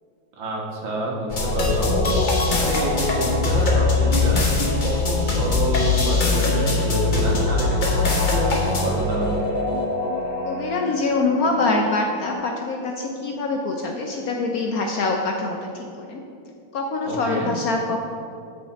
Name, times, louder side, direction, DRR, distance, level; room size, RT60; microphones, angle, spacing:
voice 1, 0.4-7.8 8.1-9.3 17.0-17.5, right 2 dB, 80° right, -2 dB, 2.1 m, -28 dB
sound 1, 1.3-11.5, left 3 dB, 35° left, 0.8 m, -22 dB
sound 2, 6.6-12.4, equal, 25° right, 2.2 m, -35 dB
voice 2, 10.5-15.6 16.0-16.2 16.7-18.0, left 3 dB, 65° left, 1 dB, 0.9 m, -24 dB
8.1 x 6.5 x 4.5 m, 2.6 s
omnidirectional pair, 2.1 m